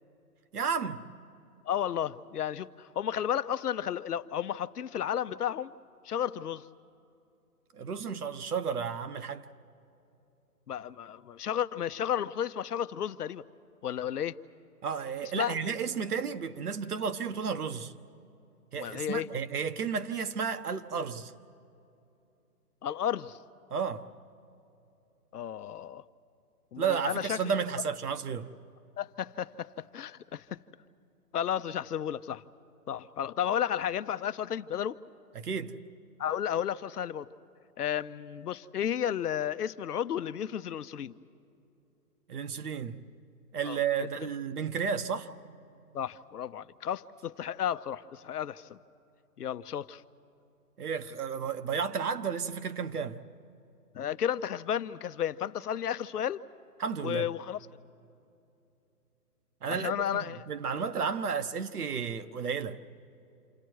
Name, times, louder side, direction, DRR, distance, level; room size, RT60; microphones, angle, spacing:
voice 1, 0.5-1.0 7.7-9.4 14.8-17.9 18.7-21.3 23.7-24.1 26.8-28.5 35.3-35.8 42.3-43.0 43.5-45.3 50.8-53.2 56.8-57.3 59.6-62.8, right 6 dB, 70° right, 1.3 m, -32 dB
voice 2, 1.6-5.7 6.0-6.7 10.7-13.4 13.8-14.4 15.2-15.8 18.8-19.3 22.8-23.4 25.3-26.0 26.7-27.5 29.0-30.6 31.3-32.4 32.9-35.0 36.2-37.3 37.8-41.1 43.6-44.1 45.9-48.8 49.4-50.0 53.9-56.4 57.0-57.6 59.7-60.5, left 9 dB, 75° left, 0.8 m, -33 dB
28.5 x 28.0 x 4.7 m
hypercardioid pair, 160°, 47 cm